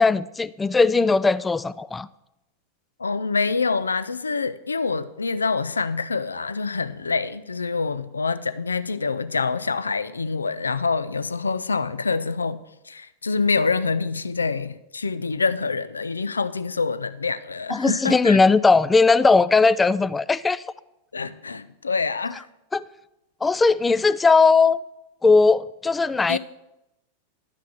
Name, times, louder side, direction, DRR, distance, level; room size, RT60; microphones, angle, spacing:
voice 1, 0.0-2.1 17.7-20.6 22.7-22.8 23.4-24.8 25.2-26.4, left 4 dB, 10° left, 0.3 m, -18 dB
voice 2, 3.0-12.6 12.9-18.4 21.1-22.4 26.3-26.4, left 4 dB, 75° left, 0.4 m, -26 dB
11.5 x 5.8 x 6.2 m
figure-of-eight pair, 90°, 0 cm